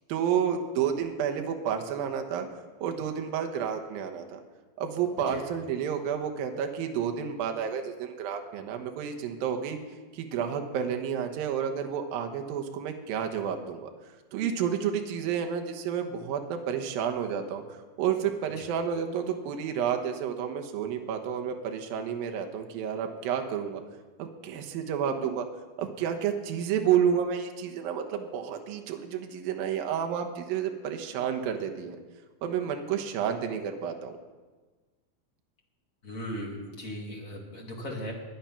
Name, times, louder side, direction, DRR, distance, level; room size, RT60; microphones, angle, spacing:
voice 1, 0.1-2.5 2.8-4.4 4.8-9.8 10.1-13.9 14.3-23.8 24.2-25.5 25.8-32.0 32.4-34.2, right 8 dB, 70° right, 5 dB, 2.8 m, -30 dB
voice 2, 36.0-38.1, equal, 30° left, -1 dB, 1.7 m, -38 dB
21.5 x 9.0 x 5.9 m, 1.3 s
omnidirectional pair, 4.5 m